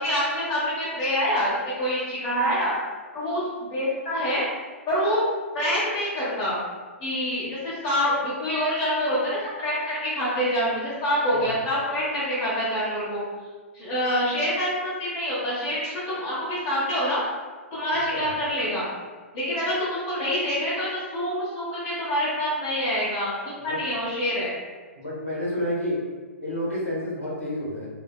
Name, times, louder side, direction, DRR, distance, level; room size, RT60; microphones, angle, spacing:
voice 1, 0.0-1.5 1.8-2.7 3.1-4.5 4.9-5.2 5.5-6.6 7.0-13.2 13.7-17.2 17.7-18.9 19.3-23.4 23.6-24.5, equal, 40° left, -9 dB, 0.8 m, -26 dB
voice 2, 25.0-26.0 26.4-27.9, equal, 85° left, -7 dB, 1.1 m, -29 dB
2.6 x 2.0 x 2.3 m, 1.4 s
figure-of-eight pair, 115°, 7 cm